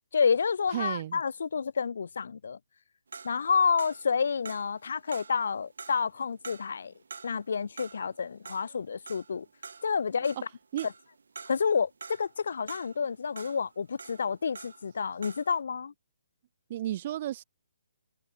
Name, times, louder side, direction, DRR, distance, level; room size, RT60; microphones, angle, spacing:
voice 1, 0.1-2.6 3.2-6.9 7.2-9.5 9.8-10.4 10.8-10.9 11.5-15.9, left 6 dB, 70° left, 1.3 m, -29 dB
voice 2, 0.7-1.2 10.7-10.9 16.7-17.4, right 13 dB, 40° right, 2.7 m, -33 dB
sound 1, 3.1-15.0 15.2-15.6, right 5 dB, 75° right, 4.9 m, -47 dB
hypercardioid pair, 150°, 0 cm